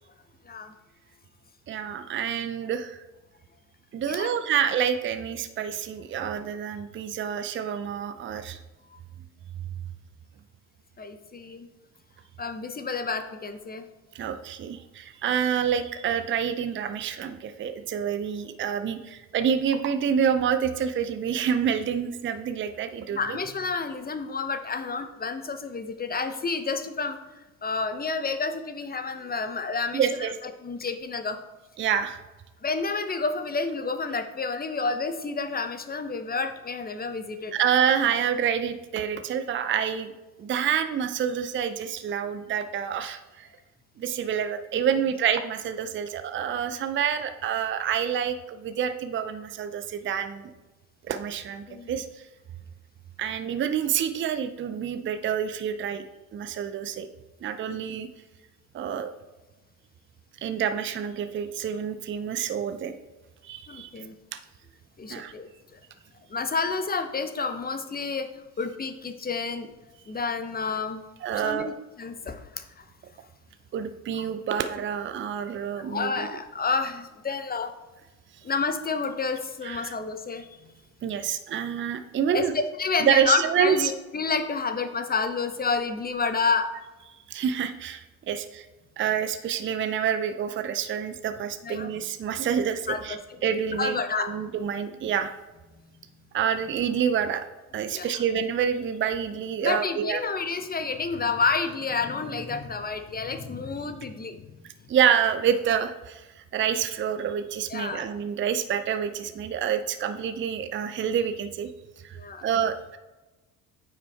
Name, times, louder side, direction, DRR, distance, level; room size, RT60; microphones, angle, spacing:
voice 1, 1.7-3.0 3.9-8.6 14.1-23.4 29.9-30.3 31.8-32.2 37.5-40.1 40.4-43.5 44.0-50.5 51.1-52.1 53.2-56.0 56.3-57.1 57.4-58.1 58.7-59.1 60.4-62.9 63.4-63.9 64.3-64.4 65.1-65.3 71.2-71.7 73.7-76.4 79.6-79.9 81.0-82.5 83.0-83.9 87.3-88.6 89.0-93.2 93.4-95.3 96.3-97.4 97.7-100.2 104.9-106.2 106.5-111.7 112.0-113.0, right 8 dB, 30° right, 9 dB, 0.6 m, -27 dB
voice 2, 11.0-11.7 12.4-13.8 23.1-30.1 30.6-31.4 32.6-37.7 51.7-51.9 57.7-57.8 63.7-64.1 65.0-65.8 66.3-69.7 70.1-71.0 71.4-71.7 72.0-72.8 75.8-77.7 78.4-80.7 82.3-86.7 91.6-91.9 92.9-93.4 93.8-94.3 97.9-98.1 99.6-104.4 107.7-108.0 112.1-112.5, left 4 dB, 20° left, 8 dB, 0.9 m, -30 dB
9.2 x 5.8 x 3.5 m, 1.1 s
hypercardioid pair, 60°, 43 cm